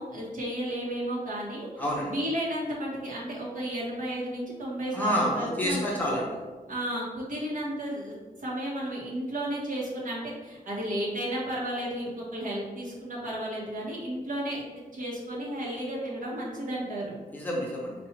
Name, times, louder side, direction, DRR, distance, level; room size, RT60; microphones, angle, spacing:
voice 1, 0.0-1.7 2.1-5.8 6.7-14.6 14.9-17.1, right 1 dB, 60° right, -5 dB, 1.4 m, -33 dB
voice 2, 1.8-2.1 4.9-6.4 17.3-17.9, equal, 10° left, -4 dB, 0.9 m, -28 dB
4.4 x 2.6 x 4.5 m, 1.3 s
wide cardioid pair, 160°, 15 cm